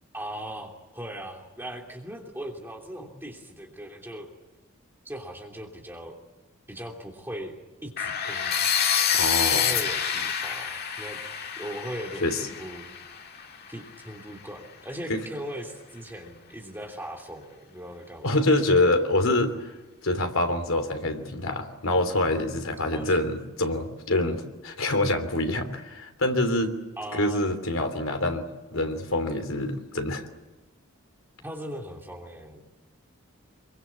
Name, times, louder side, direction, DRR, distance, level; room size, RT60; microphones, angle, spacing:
voice 1, 0.1-4.3 5.0-6.1 6.7-7.5 7.8-8.7 9.5-11.2 11.5-12.9 13.7-18.4 22.9-23.1 27.0-27.5 31.4-32.6, equal, 10° right, 1 dB, 3.0 m, -39 dB
sound 1, 8.0-13.9, left 8 dB, 45° left, 2.1 m, -27 dB
voice 2, 9.1-9.8 12.2-12.4 15.1-15.2 18.2-19.8 20.0-26.7 27.1-28.5 28.7-30.3, left 2 dB, 70° left, 6 dB, 3.1 m, -26 dB
24.5 x 23.5 x 8.5 m, 1.1 s
head